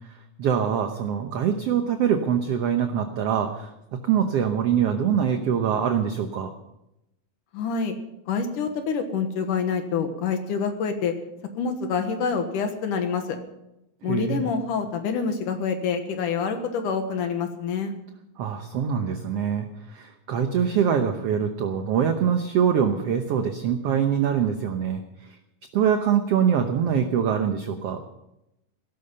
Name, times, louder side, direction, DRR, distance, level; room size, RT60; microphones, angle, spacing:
voice 1, 0.4-3.7 4.0-6.5 14.0-14.4 18.4-25.0 25.3-25.4 25.7-28.0, right 8 dB, 65° right, 6 dB, 1.6 m, -24 dB
voice 2, 7.5-8.0 8.3-11.1 11.6-13.4 14.0-17.9, left 5 dB, 75° left, 6 dB, 2.9 m, -26 dB
17.0 x 13.5 x 5.5 m, 0.87 s
omnidirectional pair, 3.8 m